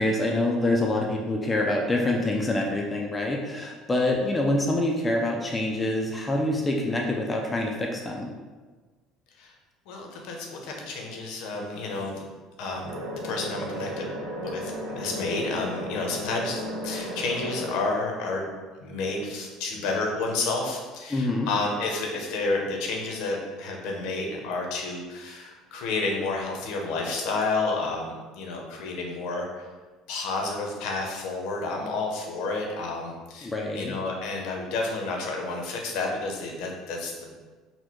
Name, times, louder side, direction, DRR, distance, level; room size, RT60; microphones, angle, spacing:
voice 1, 0.0-8.3 21.1-21.5 33.4-33.9, left 1 dB, 10° left, 0 dB, 0.4 m, -26 dB
voice 2, 9.9-12.3 12.6-14.1 14.4-18.5 18.8-29.7 30.1-37.4, left 3 dB, 70° left, 1 dB, 0.8 m, -30 dB
sound 1, 12.8-17.8, equal, 85° right, 0.8 m, -34 dB
4.2 x 2.1 x 4.4 m, 1.3 s
cardioid pair, 160°, 0 cm